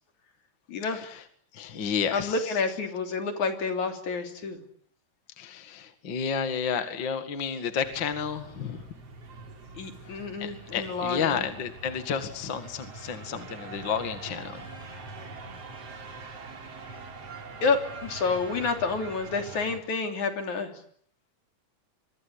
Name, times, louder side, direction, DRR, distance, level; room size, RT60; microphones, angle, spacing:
voice 1, 0.7-1.1 2.1-4.6 9.8-11.5 17.6-20.7, left 4 dB, 70° left, 6 dB, 4.6 m, -29 dB
voice 2, 1.5-2.3 5.4-8.8 10.4-14.6, left 7 dB, 40° left, 9 dB, 2.4 m, -31 dB
sound 1, 7.8-19.8, right 3 dB, 50° right, 4.3 m, -43 dB
28.0 x 24.0 x 8.6 m, 0.63 s
omnidirectional pair, 3.6 m